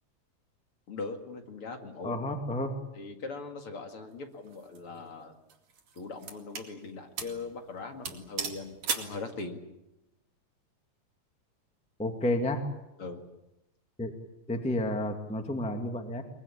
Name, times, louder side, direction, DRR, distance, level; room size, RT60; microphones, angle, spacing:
voice 1, 0.9-2.2 2.9-5.4 5.9-9.6 13.0-13.2, left 3 dB, 50° left, 4 dB, 2.8 m, -40 dB
voice 2, 2.0-2.7 12.0-12.6 14.0-14.1 14.5-16.2, left 1 dB, 5° left, 5 dB, 1.7 m, -30 dB
sound 1, 4.5-4.8 5.5-6.7 7.2-7.4 7.7-7.8 8.0-9.2, right 6 dB, 80° right, 3.9 m, -36 dB
22.5 x 22.5 x 8.7 m, 0.95 s
omnidirectional pair, 3.3 m